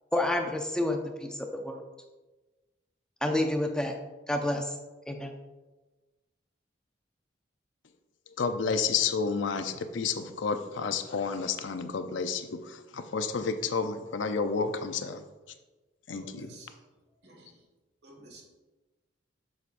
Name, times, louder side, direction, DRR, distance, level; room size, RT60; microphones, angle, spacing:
voice 1, 0.1-1.8 3.2-3.9 4.3-4.7 5.1-5.3, left 1 dB, 5° left, 3 dB, 0.5 m, -29 dB
voice 2, 8.4-15.2 16.1-16.5, left 5 dB, 80° left, 9 dB, 0.6 m, -30 dB
voice 3, 16.1-16.8 17.1-17.6 18.0-18.4, right 1 dB, 60° right, 0 dB, 1.7 m, -51 dB
7.9 x 7.1 x 2.5 m, 1.2 s
head